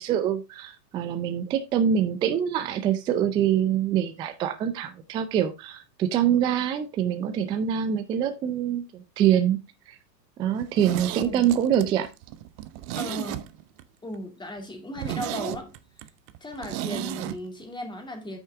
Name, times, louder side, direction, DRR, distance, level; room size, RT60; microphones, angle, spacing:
voice 1, 0.0-9.6 9.9-10.0 10.4-12.1, right 9 dB, 10° right, 0.3 m, -25 dB
Zipper (clothing), 10.6-13.8 14.1-14.2 14.6-14.7 15.0-17.4 17.6-17.7, right 13 dB, 35° right, 0.7 m, -34 dB
voice 2, 11.2-11.5 12.9-13.5 14.0-15.7 16.4-18.4, left 1 dB, 10° left, 2.4 m, -36 dB
8.7 x 6.3 x 3.4 m
hypercardioid pair, 100°, 49 cm